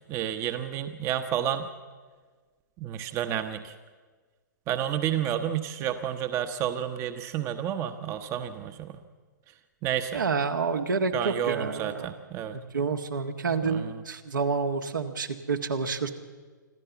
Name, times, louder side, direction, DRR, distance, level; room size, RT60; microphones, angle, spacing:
voice 1, 0.0-1.7 2.8-3.7 4.7-9.0 9.8-10.2 11.1-12.6 13.6-13.9, right 10 dB, 25° right, 9 dB, 1.0 m, -30 dB
voice 2, 10.1-12.1 12.5-16.1, right 4 dB, 75° right, 5 dB, 1.8 m, -29 dB
26.0 x 14.0 x 7.2 m, 1.5 s
figure-of-eight pair, 120°, 11 cm